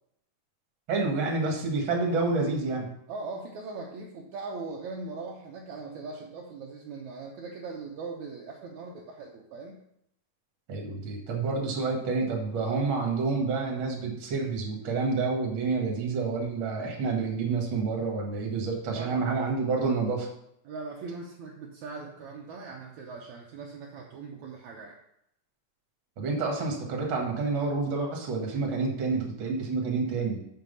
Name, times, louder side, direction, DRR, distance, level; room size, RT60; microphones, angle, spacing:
voice 1, 0.9-2.9 10.7-20.3 26.2-30.4, right 4 dB, 45° right, 0 dB, 2.1 m, -28 dB
voice 2, 3.1-9.8 18.9-19.2 20.7-25.0, right 4 dB, 70° right, -1 dB, 2.1 m, -40 dB
6.7 x 6.1 x 5.3 m, 0.76 s
omnidirectional pair, 3.7 m